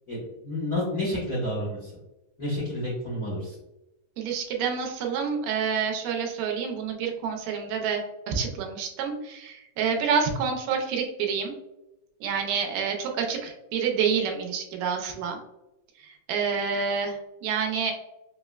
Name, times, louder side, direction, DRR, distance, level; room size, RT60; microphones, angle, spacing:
voice 1, 0.1-1.9 2.4-3.5, left 1 dB, 80° left, -7 dB, 0.7 m, -30 dB
voice 2, 4.2-11.5 12.2-15.4 16.0-17.9, right 6 dB, 90° right, 2 dB, 2.3 m, -28 dB
5.3 x 2.1 x 2.3 m, 0.95 s
omnidirectional pair, 3.7 m